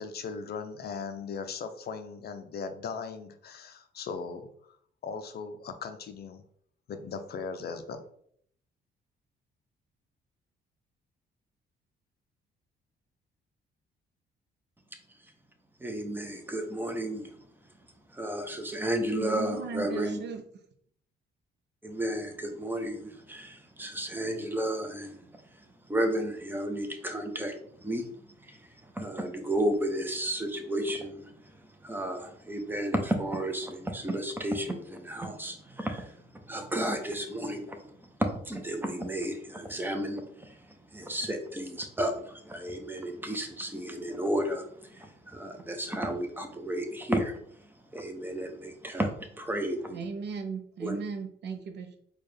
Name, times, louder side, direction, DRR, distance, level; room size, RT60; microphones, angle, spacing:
voice 1, 0.0-4.5 5.0-6.4 6.9-8.0, left 5 dB, 55° left, 8 dB, 0.5 m, -38 dB
voice 2, 15.8-17.3 18.1-20.2 21.8-25.2 25.9-28.1 28.5-28.6 28.9-31.3 31.8-37.9 38.2-40.6 40.9-47.4 47.9-50.0 50.8-51.0, right 1 dB, 10° right, 4 dB, 0.7 m, -32 dB
voice 3, 19.1-20.4 49.9-52.0, right 5 dB, 60° right, 7 dB, 0.6 m, -37 dB
4.3 x 2.3 x 3.3 m, 0.64 s
cardioid pair, 90°, 20 cm